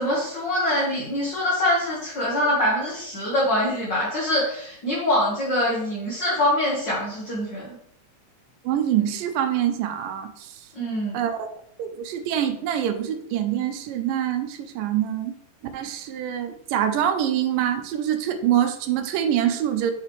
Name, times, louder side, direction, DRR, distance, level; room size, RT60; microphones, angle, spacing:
voice 1, 0.0-7.7 10.7-11.2, left 1 dB, 45° left, -5 dB, 1.7 m, -24 dB
voice 2, 8.6-10.6 11.1-11.5 11.8-15.3 15.7-19.9, right 10 dB, 90° right, 7 dB, 2.3 m, -25 dB
7.4 x 5.8 x 3.2 m, 0.70 s
omnidirectional pair, 3.9 m